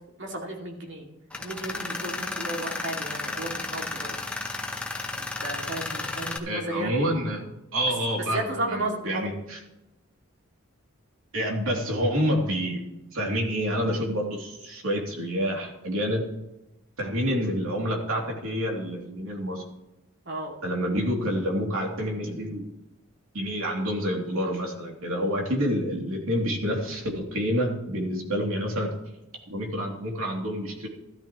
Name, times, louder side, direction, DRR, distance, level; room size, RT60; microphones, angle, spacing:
voice 1, 0.2-1.1 1.4-4.1 5.4-7.0 8.3-9.3 20.2-20.5, right 1 dB, 55° right, 0 dB, 2.5 m, -33 dB
Tools, 1.3-6.4, left 2 dB, 5° left, 0.8 m, -33 dB
voice 2, 6.5-7.4 7.7-8.4 8.7-9.6 11.3-12.8 13.1-16.2 17.0-19.6 20.6-22.6 23.3-29.0 29.5-30.9, equal, 75° right, -1 dB, 3.0 m, -28 dB
13.5 x 13.0 x 3.1 m, 0.92 s
head